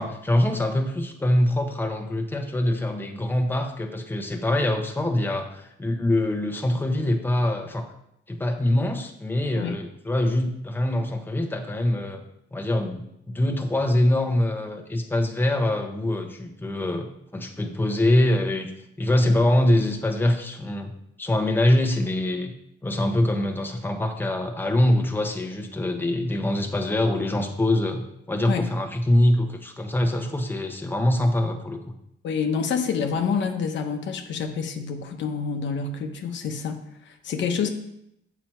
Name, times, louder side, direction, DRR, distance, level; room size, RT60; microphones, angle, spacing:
voice 1, 0.0-7.9 8.3-12.2 12.5-17.1 17.3-18.7 19.0-20.9 21.2-22.5 22.8-28.0 28.3-32.0, left 1 dB, 10° left, 3 dB, 1.1 m, -24 dB
voice 2, 32.2-37.7, left 6 dB, 65° left, 4 dB, 1.0 m, -28 dB
7.4 x 6.0 x 4.4 m, 0.78 s
cardioid pair, 90°, 20 cm